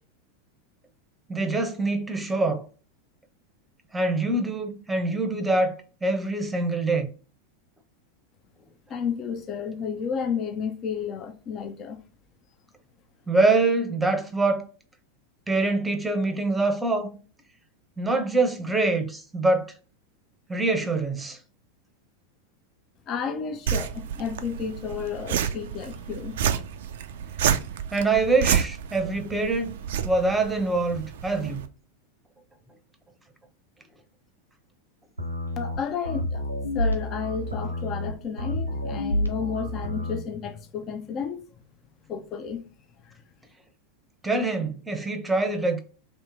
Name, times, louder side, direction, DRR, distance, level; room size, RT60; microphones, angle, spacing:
voice 1, 1.3-2.7 3.9-7.1 13.3-14.6 15.5-17.1 18.0-19.7 20.5-21.4 27.9-31.7 44.2-45.8, right 2 dB, 10° right, 0.7 m, -24 dB
voice 2, 8.9-12.0 23.1-26.3 35.6-36.4 36.7-41.4 42.1-42.6 43.0-43.2, left 6 dB, 35° left, 0.5 m, -32 dB
sound 1, 23.7-31.7, right 8 dB, 65° right, 0.3 m, -30 dB
sound 2, 35.2-40.2, left 1 dB, 90° right, 0.8 m, -29 dB
3.1 x 2.9 x 3.5 m
figure-of-eight pair, 90°, 0 cm